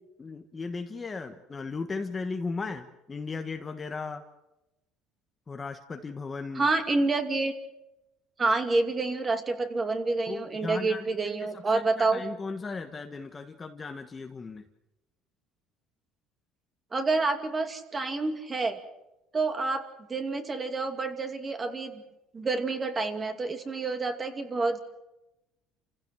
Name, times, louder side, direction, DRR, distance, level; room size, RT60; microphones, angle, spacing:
voice 1, 0.2-4.2 5.5-6.7 10.3-14.6, left 4 dB, 20° left, 6 dB, 1.3 m, -36 dB
voice 2, 6.5-7.5 8.4-12.2 16.9-18.8 19.3-19.8 20.1-22.0 22.3-24.8, right 3 dB, 20° right, 7 dB, 2.5 m, -28 dB
30.0 x 16.0 x 7.7 m, 0.92 s
cardioid pair, 160°, 0 cm